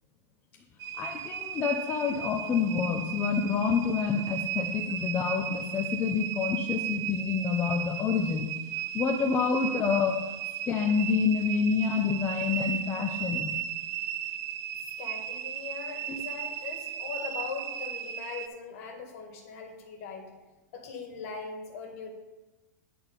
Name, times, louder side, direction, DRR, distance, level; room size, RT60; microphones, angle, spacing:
sound 1, 0.8-18.5, right 10 dB, 30° right, 0.5 m, -36 dB
voice 1, 1.0-8.6 8.9-10.2 10.7-13.5 16.1-16.2, left 6 dB, 20° left, 2 dB, 0.6 m, -28 dB
voice 2, 15.0-20.3 20.7-22.1, left 5 dB, 50° left, 3 dB, 1.8 m, -40 dB
10.0 x 4.3 x 5.4 m, 1.1 s
hypercardioid pair, 140°, 10 cm